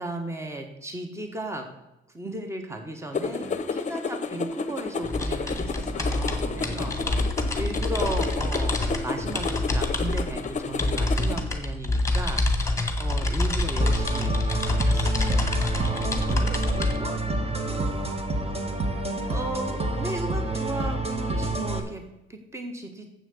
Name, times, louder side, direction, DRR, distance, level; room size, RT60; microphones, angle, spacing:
voice 1, 0.0-1.7 2.1-15.8 19.3-22.0 22.3-23.1, right 1 dB, 15° right, 5 dB, 1.5 m, -36 dB
sound 1, 3.1-11.4, left 4 dB, 35° left, 0.8 m, -31 dB
voice 2, 3.4-3.7 6.2-7.4 15.7-18.3, right 2 dB, 65° right, 4 dB, 2.2 m, -41 dB
sound 2, 5.0-17.0, left 2 dB, 15° left, 1.7 m, -27 dB
sound 3, 13.8-21.8, right 2 dB, 30° right, 1.5 m, -28 dB
7.8 x 6.2 x 7.9 m, 0.93 s
cardioid pair, 90°, 20 cm